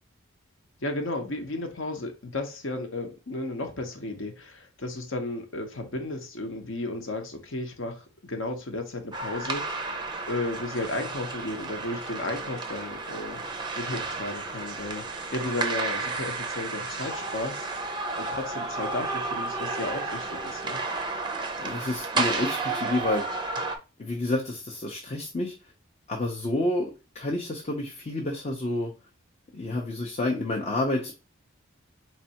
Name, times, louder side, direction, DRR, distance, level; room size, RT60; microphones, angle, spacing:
voice 1, 0.8-13.4 13.8-15.0 15.3-17.7 18.2-20.8, left 2 dB, 65° left, 0.9 m, -34 dB
sound 1, 9.1-23.8, right 3 dB, 20° right, 0.5 m, -32 dB
voice 2, 21.6-23.2 24.0-25.5 26.1-26.9 27.1-28.9 29.5-31.1, left 2 dB, 30° left, 0.6 m, -29 dB
4.3 x 3.3 x 2.8 m
head